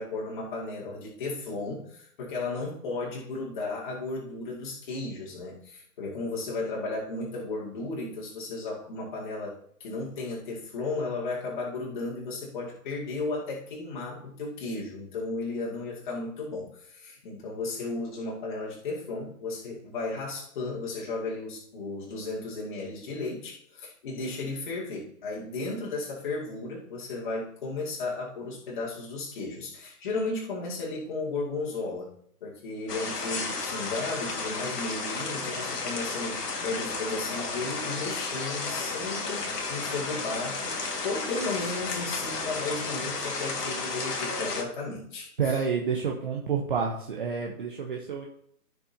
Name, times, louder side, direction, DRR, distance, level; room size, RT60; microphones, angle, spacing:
voice 1, 0.0-32.1 32.4-45.6, left 3 dB, 30° left, -4 dB, 2.4 m, -34 dB
sound 1, 32.9-44.6, left 3 dB, 90° left, 2.1 m, -33 dB
voice 2, 45.4-48.3, right 6 dB, 35° right, 0 dB, 1.0 m, -29 dB
15.5 x 5.9 x 2.9 m, 0.65 s
hypercardioid pair, 170°, 46 cm